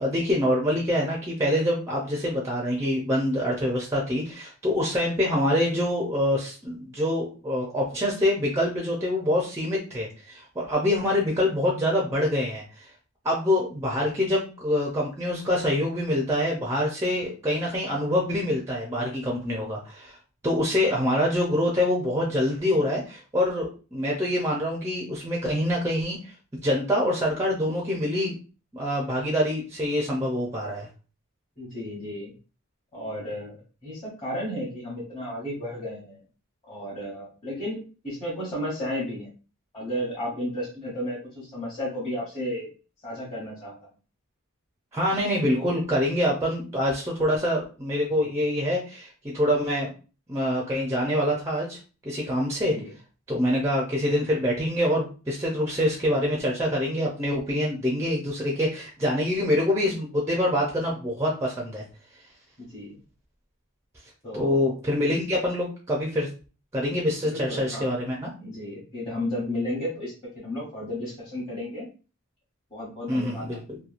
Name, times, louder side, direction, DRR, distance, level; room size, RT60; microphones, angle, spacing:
voice 1, 0.0-12.6 13.2-20.2 20.4-26.3 26.6-28.4 28.7-30.9 44.9-49.9 50.3-51.8 52.0-52.8 53.3-61.8 64.3-66.3 66.7-68.3 73.1-73.8, left 1 dB, 15° right, -2 dB, 0.5 m, -25 dB
voice 2, 31.6-32.3 32.9-33.6 33.8-36.2 36.7-39.3 39.7-42.7 43.0-43.7 45.5-45.8 52.6-52.9 62.6-63.0 64.2-64.7 67.2-67.9 68.4-71.9 72.7-73.5, left 1 dB, 25° left, -8 dB, 1.0 m, -33 dB
2.8 x 2.2 x 2.4 m, 0.34 s
head